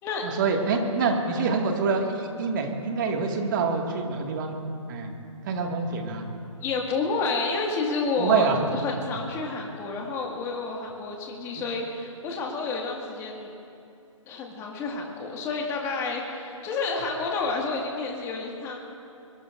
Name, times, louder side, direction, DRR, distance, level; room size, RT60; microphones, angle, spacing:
voice 1, 0.2-4.6 4.9-5.1 5.4-6.3 8.2-8.6, right 5 dB, 35° right, 2 dB, 2.0 m, -26 dB
voice 2, 6.6-13.5 14.3-18.9, left 4 dB, 15° left, -1 dB, 1.9 m, -30 dB
23.5 x 22.5 x 2.6 m, 2.6 s
figure-of-eight pair, 140°, 17 cm